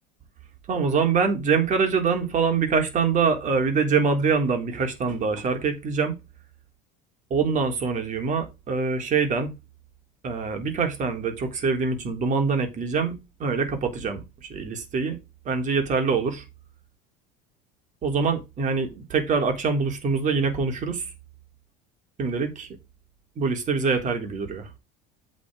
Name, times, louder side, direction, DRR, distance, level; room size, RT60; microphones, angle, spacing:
voice 1, 0.7-6.1 7.3-9.5 10.2-15.2 15.5-16.4 18.0-21.1 22.2-22.7 23.4-24.7, right 5 dB, 40° right, 3.5 m, -24 dB
8.7 x 5.2 x 4.9 m
supercardioid pair, 110°, 20 cm